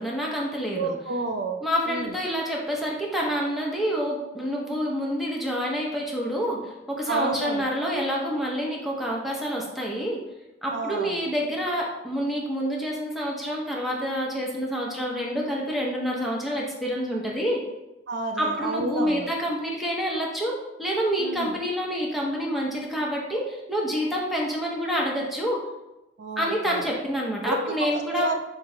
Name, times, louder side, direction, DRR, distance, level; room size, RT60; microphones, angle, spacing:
voice 1, 0.0-0.9 1.6-10.2 10.6-17.6 18.4-25.6 26.4-28.3, equal, ahead, -3 dB, 0.6 m, -28 dB
voice 2, 0.7-1.6 1.9-2.1 7.1-7.7 10.7-11.3 18.1-19.3 21.2-21.5 26.2-26.8 27.4-27.7 28.1-28.3, right 3 dB, 60° right, 4 dB, 0.4 m, -30 dB
4.3 x 2.9 x 3.7 m, 0.97 s
head